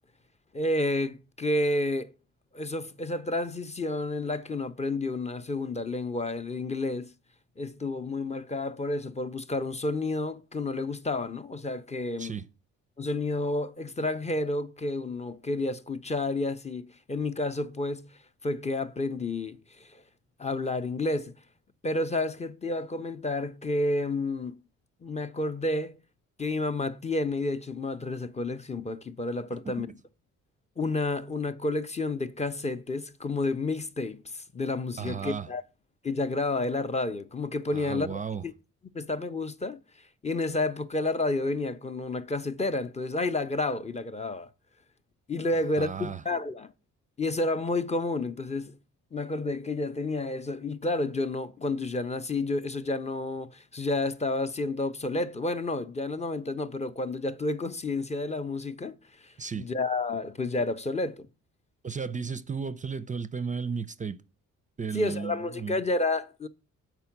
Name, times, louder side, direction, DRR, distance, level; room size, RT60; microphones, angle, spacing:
voice 1, 0.5-2.1 2.5-7.1 7.6-12.4 13.0-18.1 18.4-20.0 20.4-21.4 21.8-24.6 25.0-26.0 26.4-29.9 30.8-35.6 36.0-38.1 38.4-38.5 38.9-39.8 40.2-44.5 45.3-46.7 47.2-48.8 49.1-59.0 59.2-61.3 64.9-66.5, left 2 dB, 20° left, 0.6 m, -30 dB
voice 2, 35.0-35.5 37.7-38.4 45.8-46.2 59.4-59.7 61.8-64.2 64.8-65.8, right 5 dB, 25° right, 0.4 m, -34 dB
6.8 x 4.5 x 5.8 m
cardioid pair, 90°, 30 cm